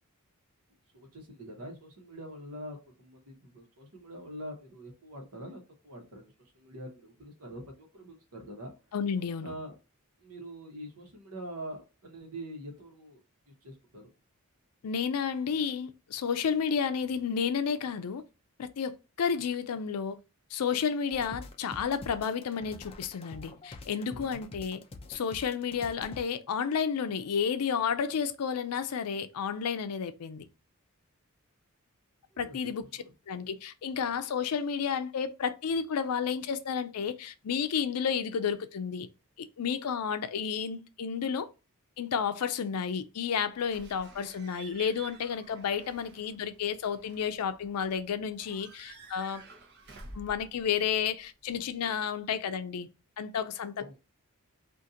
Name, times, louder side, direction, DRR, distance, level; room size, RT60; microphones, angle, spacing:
voice 1, 0.9-7.6 7.9-8.7 9.4-9.7 10.2-13.2 13.6-14.1 24.1-24.4 32.4-32.7 53.8-53.9, right 1 dB, 80° right, 1.1 m, -44 dB
voice 2, 8.9-9.5 14.8-18.2 18.6-20.2 20.5-24.8 25.1-30.5 32.4-39.1 39.4-41.5 42.0-49.4 50.1-52.9 53.2-54.0, left 7 dB, 90° left, 0.4 m, -31 dB
sound 1, 21.1-26.2, left 2 dB, 25° left, 0.3 m, -46 dB
Slam / Squeak / Alarm, 43.6-51.6, right 4 dB, 50° right, 0.7 m, -51 dB
2.8 x 2.5 x 3.7 m
head